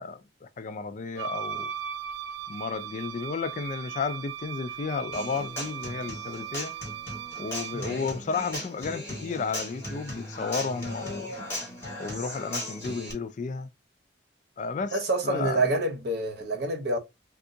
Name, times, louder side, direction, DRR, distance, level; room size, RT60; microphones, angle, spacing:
voice 1, 0.0-1.7 2.5-6.7 7.4-11.3 12.0-13.7 14.6-15.6, left 4 dB, 40° left, 0.3 m, -33 dB
Wind instrument woodwind instrument, 1.2-7.9, right 8 dB, 75° right, 0.3 m, -38 dB
Human voice / Acoustic guitar, 5.1-13.1, left 1 dB, 15° left, 1.6 m, -37 dB
voice 2, 7.7-8.0 14.9-17.0, right 2 dB, 60° right, 1.0 m, -27 dB
3.6 x 2.3 x 2.6 m
head